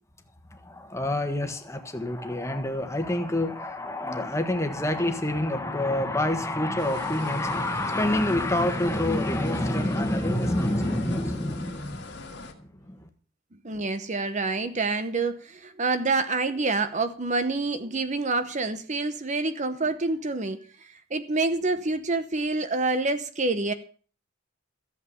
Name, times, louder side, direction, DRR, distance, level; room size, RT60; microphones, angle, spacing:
voice 1, 0.5-13.1, left 1 dB, 15° left, 1.4 m, -27 dB
sound 1, 6.8-12.5, left 3 dB, 60° left, 1.9 m, -41 dB
voice 2, 13.6-23.7, right 3 dB, 35° right, 0.9 m, -27 dB
14.0 x 7.8 x 7.0 m
head